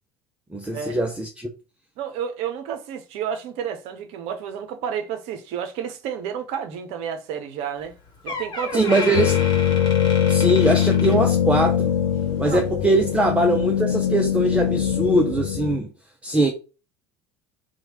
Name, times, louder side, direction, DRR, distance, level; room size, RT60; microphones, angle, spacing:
voice 1, 0.5-1.5 8.7-9.4 10.3-11.9 12.4-15.9 16.2-16.5, right 1 dB, 10° right, 0.5 m, -21 dB
voice 2, 2.0-7.9 8.2-8.8 12.4-12.6 13.2-13.3, right 8 dB, 55° right, 0.6 m, -31 dB
Door, 7.8-7.9 8.3-11.8 12.1-12.4 13.1-13.2, left 3 dB, 35° left, 1.2 m, -33 dB
sound 1, 9.1-15.8, left 9 dB, 75° left, 0.5 m, -22 dB
3.0 x 2.2 x 2.9 m
figure-of-eight pair, 65°, 13 cm